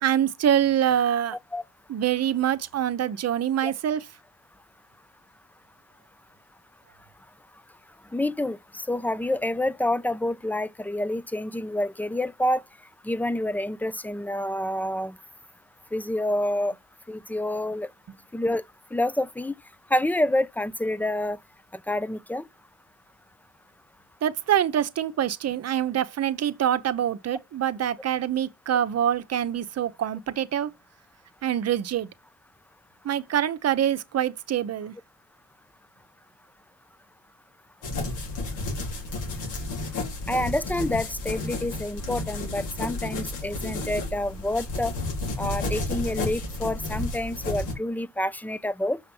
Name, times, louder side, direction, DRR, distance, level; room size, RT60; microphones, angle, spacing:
voice 1, 0.0-1.4 1.9-4.0 24.2-30.7 31.4-32.1 33.0-34.9, right 10 dB, 55° right, 0.9 m, -25 dB
voice 2, 8.1-12.6 13.0-15.1 15.9-16.7 17.1-17.9 18.3-18.6 18.9-19.5 19.9-21.4 21.9-22.4 40.3-44.9 45.4-49.0, left 1 dB, 5° left, 0.6 m, -28 dB
sound 1, 37.8-47.7, left 2 dB, 85° left, 3.9 m, -32 dB
6.5 x 5.8 x 5.4 m
cardioid pair, 90°, 30 cm